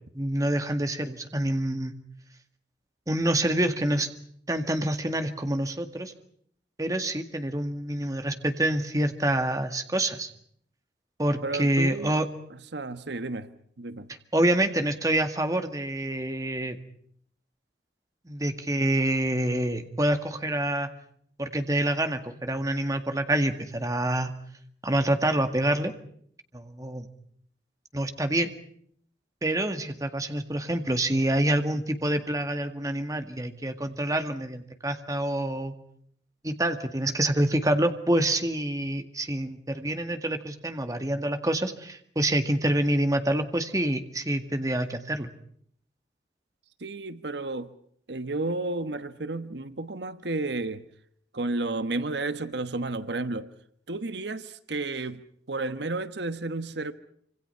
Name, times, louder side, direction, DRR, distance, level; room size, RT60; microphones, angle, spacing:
voice 1, 0.1-1.9 3.1-4.1 4.5-6.1 6.8-10.3 11.2-12.3 14.3-16.8 18.3-20.9 21.4-24.3 24.8-25.9 26.5-27.1 27.9-28.5 29.4-35.7 36.4-45.3, right 1 dB, 20° right, 1.9 m, -27 dB
voice 2, 11.4-12.1 12.7-13.5 13.8-14.1 46.8-47.7 48.1-50.9 51.3-53.5 53.9-56.9, right 2 dB, 75° right, 1.3 m, -32 dB
27.0 x 26.5 x 5.7 m
head